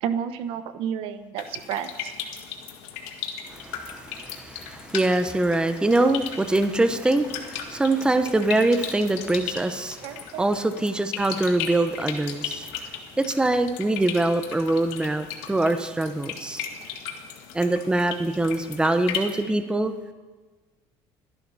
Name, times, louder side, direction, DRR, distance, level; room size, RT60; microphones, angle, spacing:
voice 1, 0.0-2.1 10.0-10.4, right 8 dB, 70° right, 10 dB, 1.0 m, -31 dB
sound 1, 1.4-19.4, left 8 dB, 85° left, 1.8 m, -37 dB
voice 2, 3.5-12.7 13.2-16.6 17.5-19.9, right 2 dB, 10° right, 8 dB, 0.9 m, -24 dB
28.0 x 11.0 x 4.2 m, 1.3 s
cardioid pair, 120°, 10 cm